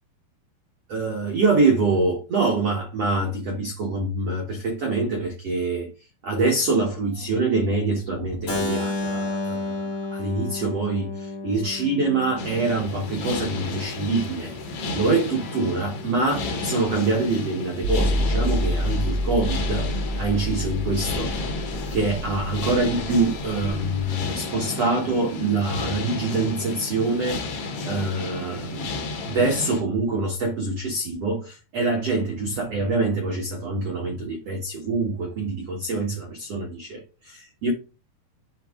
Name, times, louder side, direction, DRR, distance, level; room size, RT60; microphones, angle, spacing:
voice 1, 0.9-5.9 6.2-21.3 21.9-37.7, right 3 dB, 90° right, 1.3 m, -25 dB
Keyboard (musical), 8.5-14.3, left 2 dB, 30° left, 1.9 m, -32 dB
sound 1, 12.4-29.8, left 3 dB, 75° left, 1.4 m, -32 dB
sound 2, 17.8-24.1, equal, 75° right, 2.4 m, -28 dB
10.0 x 3.7 x 3.7 m
omnidirectional pair, 5.0 m